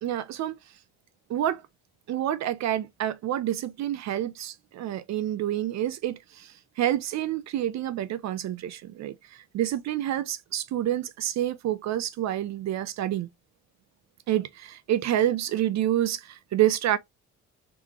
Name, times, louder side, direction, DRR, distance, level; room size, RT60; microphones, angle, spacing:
voice 1, 0.0-0.6 1.3-1.6 2.1-13.3 14.3-17.0, right 12 dB, 65° right, 0.5 m, -28 dB
3.6 x 2.9 x 3.4 m
cardioid pair, 90°, 30 cm